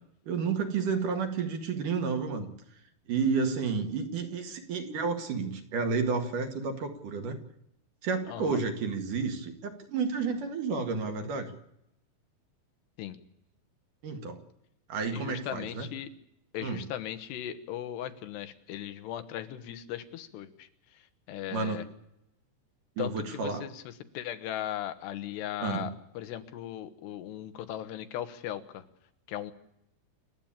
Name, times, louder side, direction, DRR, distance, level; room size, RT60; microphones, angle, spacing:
voice 1, 0.3-2.5 3.1-7.4 8.0-11.5 14.0-14.4 14.9-15.9 16.6-16.8 21.5-21.8 23.0-23.7 25.6-25.8, right 5 dB, 55° right, 5 dB, 3.4 m, -31 dB
voice 2, 8.3-8.6 13.0-13.2 15.1-16.1 16.5-20.7 21.3-21.8 23.0-23.8 24.1-28.8 29.3-29.5, left 11 dB, 80° left, 10 dB, 3.3 m, -38 dB
28.5 x 13.5 x 8.9 m, 0.79 s
omnidirectional pair, 4.7 m